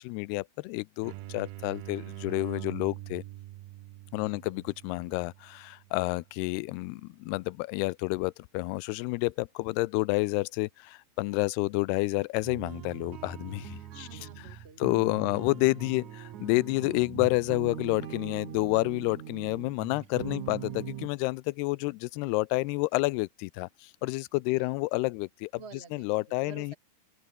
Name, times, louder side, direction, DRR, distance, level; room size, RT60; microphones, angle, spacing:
voice 1, 0.0-3.2 4.1-14.1 14.8-25.5 25.9-26.8, left 23 dB, 80° left, 2.5 m, -29 dB
sound 1, 1.0-6.5, right 16 dB, 75° right, 2.7 m, -44 dB
voice 2, 4.1-4.5 13.8-15.4 24.5-24.8 25.6-26.8, right 4 dB, 15° right, 2.7 m, -51 dB
sound 2, 12.4-21.1, right 10 dB, 55° right, 2.5 m, -42 dB
sound 3, 16.8-21.2, right 9 dB, 90° right, 5.2 m, -55 dB
open air
omnidirectional pair, 4.9 m